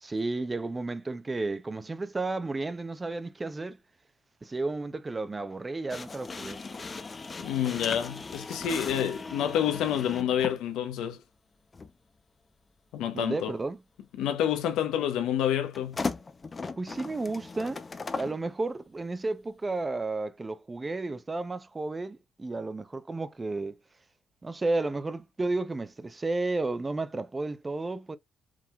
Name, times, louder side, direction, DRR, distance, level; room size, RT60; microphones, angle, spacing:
voice 1, 0.0-3.8 4.4-6.6 13.1-13.8 16.8-17.8 18.2-23.8 24.4-28.2, right 2 dB, 25° right, 0.7 m, -32 dB
sound 1, 5.9-10.6 11.7-11.9 15.7-18.4, left 4 dB, 30° left, 0.7 m, -37 dB
voice 2, 7.4-11.2 12.9-13.5 14.2-16.0, left 10 dB, 90° left, 0.9 m, -28 dB
4.8 x 3.6 x 2.3 m
cardioid pair, 90°, 0 cm